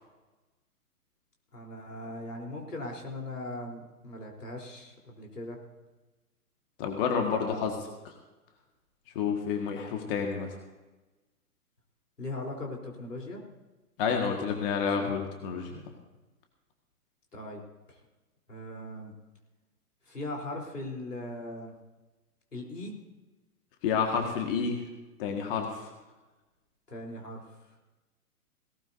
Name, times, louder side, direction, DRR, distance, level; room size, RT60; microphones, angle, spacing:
voice 1, 1.5-5.6 7.3-7.7 12.2-13.4 14.3-14.6 15.0-15.1 17.3-17.6 17.9-18.0 18.5-19.1 20.1-21.7 22.5-23.0 26.9-27.6, left 1 dB, 80° left, 0 dB, 3.8 m, -39 dB
voice 2, 6.8-7.8 8.1-8.2 9.2-10.5 14.0-15.7 23.8-24.8 25.2-25.9, left 6 dB, 35° left, 3 dB, 1.8 m, -29 dB
18.0 x 18.0 x 2.7 m, 1.1 s
figure-of-eight pair, 120°, 46 cm